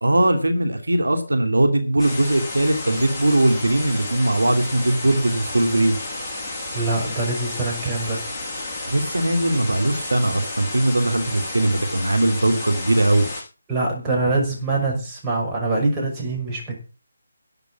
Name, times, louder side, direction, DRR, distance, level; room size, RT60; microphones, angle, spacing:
voice 1, 0.0-6.0 8.9-13.2, right 1 dB, 85° right, 7 dB, 2.7 m, -20 dB
sound 1, 2.0-13.4, left 2 dB, 10° left, 7.2 m, -32 dB
voice 2, 6.7-8.2 13.7-16.8, right 2 dB, 10° right, -3 dB, 5.8 m, -24 dB
12.5 x 8.4 x 7.3 m, 0.35 s
figure-of-eight pair, 155°, 0 cm